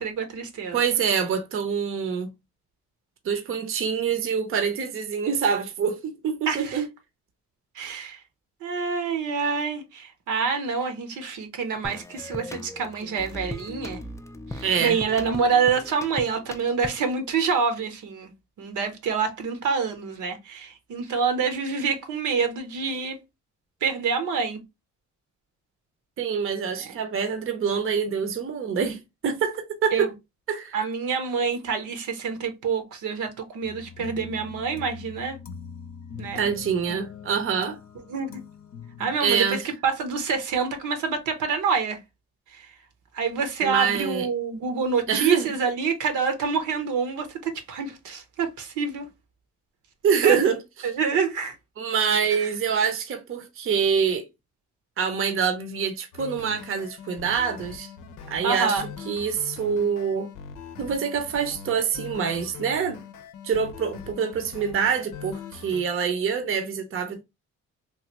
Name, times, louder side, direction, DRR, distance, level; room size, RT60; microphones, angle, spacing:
voice 1, 0.0-0.8 6.5-6.8 7.7-8.2 8.6-14.0 14.5-18.3 18.6-23.2 23.8-24.6 26.9-27.0 29.9-30.1 30.7-35.4 36.2-36.5 38.1-38.3 39.0-42.0 42.5-42.7 43.1-49.1 50.2-50.4 50.8-51.6 52.3-52.5 58.4-58.8, right 5 dB, 80° right, 0.9 m, -27 dB
voice 2, 0.7-2.3 3.2-6.9 14.6-15.0 26.2-30.1 30.5-30.8 36.4-37.8 39.2-39.6 43.6-44.3 45.1-45.5 50.0-50.9 51.8-54.3 55.0-57.9 58.3-60.3 60.8-63.0 63.4-67.2, right 6 dB, 45° right, 0.7 m, -25 dB
sound 1, 11.8-17.2, left 2 dB, 10° left, 0.3 m, -39 dB
sound 2, 33.6-39.1, left 6 dB, 45° left, 0.6 m, -41 dB
sound 3, 56.1-65.8, left 7 dB, 85° left, 0.6 m, -42 dB
3.1 x 2.4 x 2.9 m
cardioid pair, 90°, 30 cm